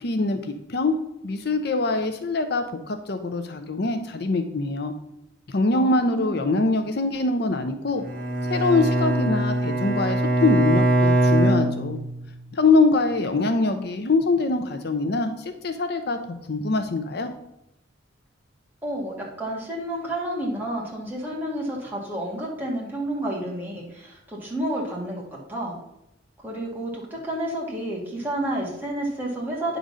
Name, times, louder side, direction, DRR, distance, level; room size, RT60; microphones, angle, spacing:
voice 1, 0.0-0.9 1.2-4.9 5.5-8.0 8.5-12.0 12.5-17.3, left 3 dB, 55° left, 7 dB, 0.6 m, -23 dB
voice 2, 5.7-6.4 18.8-25.2 25.5-25.7 26.4-29.8, right 1 dB, 10° right, -4 dB, 2.1 m, -30 dB
Bowed string instrument, 8.0-12.4, right 1 dB, 45° right, 1.3 m, -22 dB
9.3 x 4.0 x 6.2 m, 0.85 s
head